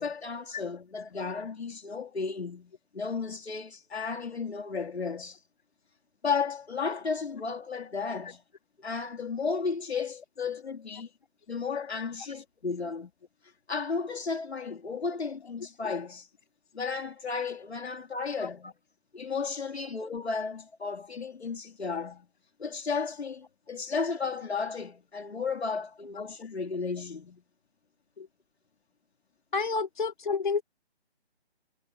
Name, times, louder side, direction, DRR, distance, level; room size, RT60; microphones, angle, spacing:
voice 1, 0.0-5.4 6.2-8.4 8.8-11.1 11.5-13.1 13.7-16.3 16.7-18.7 19.1-22.3 22.6-27.4, left 5 dB, 70° left, 3.3 m, -34 dB
voice 2, 29.5-30.6, left 4 dB, 45° left, 3.7 m, -29 dB
hypercardioid pair, 175°, 33 cm